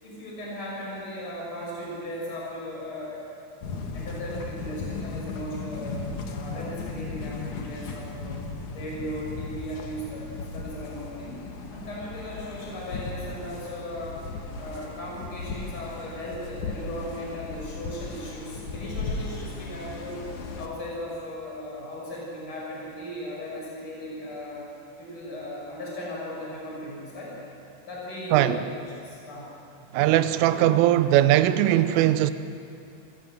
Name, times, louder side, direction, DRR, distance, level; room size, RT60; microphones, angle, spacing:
voice 1, 0.0-3.2 3.9-8.4 8.7-11.4 11.7-14.3 14.5-20.2 20.6-24.6 25.0-27.4 27.8-29.5, equal, 25° left, -5 dB, 7.0 m, -37 dB
sound 1, 3.6-20.7, left 3 dB, 60° left, 2.2 m, -36 dB
voice 2, 29.9-32.3, right 13 dB, 80° right, 12 dB, 3.2 m, -20 dB
29.5 x 15.5 x 7.8 m, 2.6 s
omnidirectional pair, 5.9 m